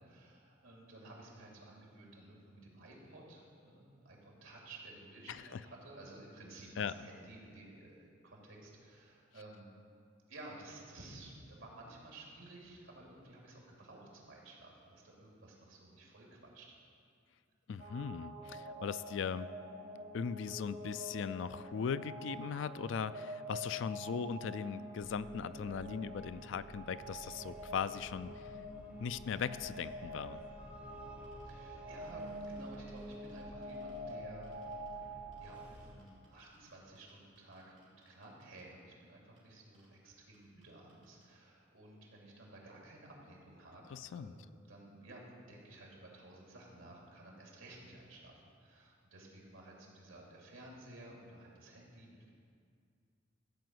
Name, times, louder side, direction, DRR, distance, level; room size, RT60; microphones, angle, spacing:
voice 1, 0.0-9.8 10.3-16.8 31.4-34.5 34.9-35.1 35.4-37.8 38.0-52.3, right 2 dB, 80° right, -2 dB, 2.7 m, -54 dB
voice 2, 5.3-5.6 6.8-6.9 17.7-19.5 20.1-28.4 29.0-30.4 43.9-44.3, left 6 dB, 65° left, 14 dB, 0.3 m, -39 dB
sound 1, 17.8-35.7, equal, 50° right, 1.3 m, -47 dB
sound 2, 25.0-35.9, equal, 10° right, 1.6 m, -55 dB
sound 3, 31.2-31.5 31.9-34.1 34.4-34.9 35.3-37.1 37.4-38.6 39.4-39.5 39.7-39.9 40.3-40.4 40.6-40.7 40.9-41.2, right 3 dB, 35° right, 3.1 m, -70 dB
14.0 x 5.0 x 7.8 m, 2.3 s
head